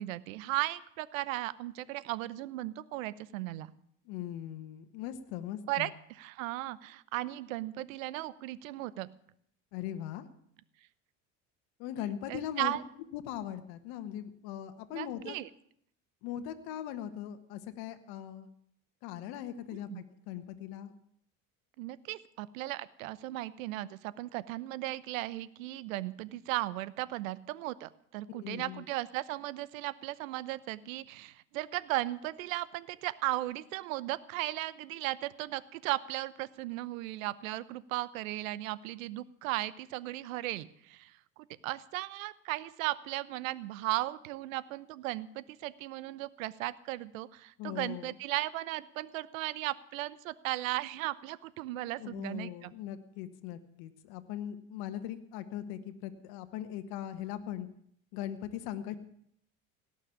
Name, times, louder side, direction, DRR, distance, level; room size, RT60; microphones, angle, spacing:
voice 1, 0.0-3.7 5.7-9.1 12.3-12.8 14.9-15.5 19.9-20.0 21.8-52.7, right 17 dB, 80° right, 18 dB, 0.9 m, -36 dB
voice 2, 4.0-5.9 9.7-10.3 11.8-12.8 13.1-15.4 16.2-18.5 19.0-20.9 28.3-28.8 47.6-48.2 52.0-57.7 58.1-59.0, left 11 dB, 70° left, 9 dB, 1.5 m, -40 dB
17.5 x 6.6 x 9.9 m, 0.69 s
hypercardioid pair, 75°, 39 cm